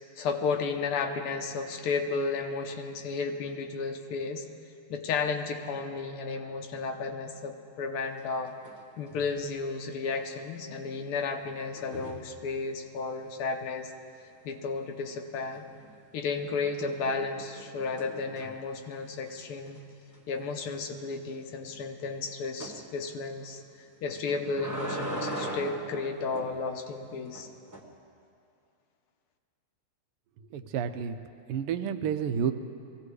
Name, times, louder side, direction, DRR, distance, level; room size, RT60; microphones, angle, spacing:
voice 1, 0.2-4.5 4.9-8.5 9.0-13.9 14.5-15.7 16.1-19.8 20.3-23.6 24.0-27.5, left 4 dB, 85° left, 5 dB, 1.8 m, -33 dB
sound 1, 8.2-8.8 9.1-9.4 11.8-12.3 15.4-15.9 16.4-18.7 19.2-19.3 19.7-19.8 20.1-20.2 22.6-22.8 24.1-26.6 27.3-27.8, right 1 dB, 15° right, 0.6 m, -39 dB
voice 2, 30.5-31.2 31.5-32.5, right 8 dB, 85° right, 9 dB, 1.6 m, -30 dB
21.5 x 16.0 x 3.3 m, 2.4 s
omnidirectional pair, 2.4 m